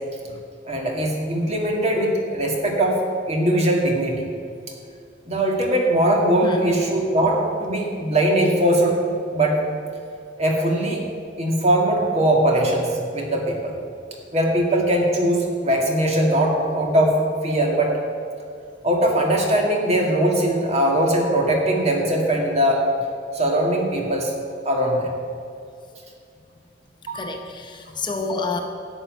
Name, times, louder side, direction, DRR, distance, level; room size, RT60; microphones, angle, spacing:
voice 1, 0.7-4.2 5.3-9.0 9.3-9.6 10.4-11.0 11.4-13.8 14.3-18.0 18.8-22.8 23.3-24.3 24.7-25.1 27.1-27.3, right 1 dB, 35° right, 0 dB, 2.1 m, -20 dB
voice 2, 6.4-6.8 27.1-28.6, left 3 dB, 25° left, 4 dB, 0.8 m, -28 dB
13.0 x 5.7 x 9.1 m, 2.4 s
head